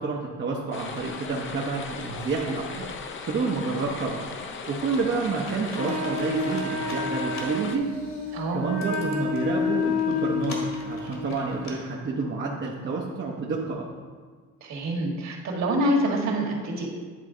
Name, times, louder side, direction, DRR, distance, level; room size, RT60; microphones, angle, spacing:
voice 1, 0.0-2.9 3.3-4.3 4.7-7.9 8.5-13.9, right 4 dB, 35° right, -3 dB, 0.8 m, -29 dB
sound 1, 0.7-7.8, left 4 dB, 40° left, 0.6 m, -37 dB
Computer keyboard, 4.7-11.7, left 2 dB, 55° left, 1.8 m, -45 dB
Wind instrument woodwind instrument, 5.7-11.3, left 4 dB, 80° left, 1.4 m, -29 dB
voice 2, 8.3-8.6 14.6-16.9, right 1 dB, 60° right, -1 dB, 1.8 m, -26 dB
10.0 x 4.0 x 3.8 m, 1.5 s
cardioid pair, 110°, 32 cm